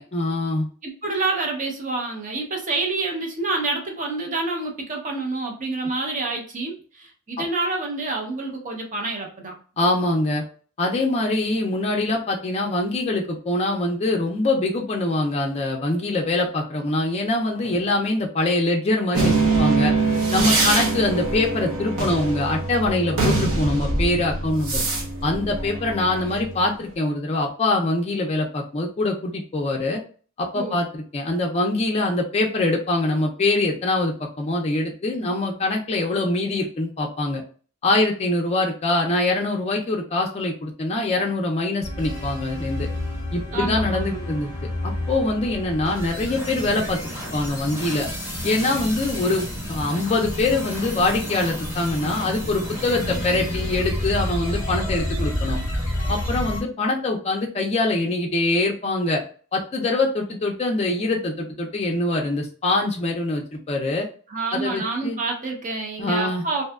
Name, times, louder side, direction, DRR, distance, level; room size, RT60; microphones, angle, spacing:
voice 1, 0.0-0.7 7.4-7.5 9.8-10.4 10.8-19.9 20.3-24.8 25.2-30.0 30.4-37.4 37.8-42.9 43.3-44.5 44.8-47.0 47.3-48.1 48.4-55.6 56.1-59.2 59.5-64.1 64.5-65.2 66.0-66.4, left 2 dB, 30° left, 0 dB, 0.4 m, -24 dB
voice 2, 0.8-9.5 30.5-30.8 43.5-44.3 64.3-66.6, right 3 dB, 35° right, 1 dB, 0.6 m, -28 dB
sound 1, 19.1-26.7, right 3 dB, 70° right, 0.8 m, -23 dB
sound 2, 41.8-56.6, left 1 dB, 15° right, 1.2 m, -29 dB
2.7 x 2.3 x 2.2 m, 0.41 s
head